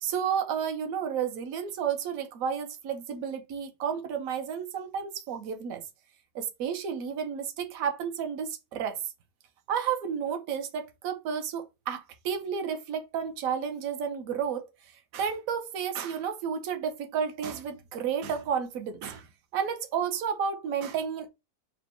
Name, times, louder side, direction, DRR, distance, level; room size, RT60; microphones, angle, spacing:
voice 1, 0.0-5.8 6.3-9.0 9.7-14.7 15.1-19.3 19.5-21.3, right 7 dB, 60° right, 1.0 m, -31 dB
4.1 x 2.1 x 4.2 m
omnidirectional pair, 1.9 m